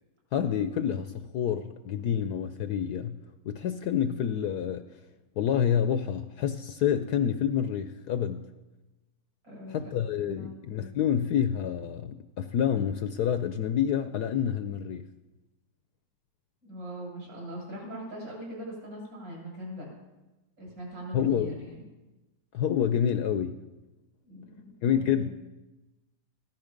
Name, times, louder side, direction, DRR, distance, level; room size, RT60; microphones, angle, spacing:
voice 1, 0.3-3.2 3.5-4.9 5.4-8.4 9.7-15.1 21.1-21.6 22.5-23.6 24.8-25.3, left 9 dB, 70° left, 9 dB, 1.1 m, -28 dB
voice 2, 9.4-9.8 10.3-10.6 16.6-19.9 20.6-21.8 24.2-25.3, equal, 65° right, -3 dB, 7.4 m, -41 dB
15.5 x 14.0 x 5.2 m, 1.1 s
omnidirectional pair, 2.1 m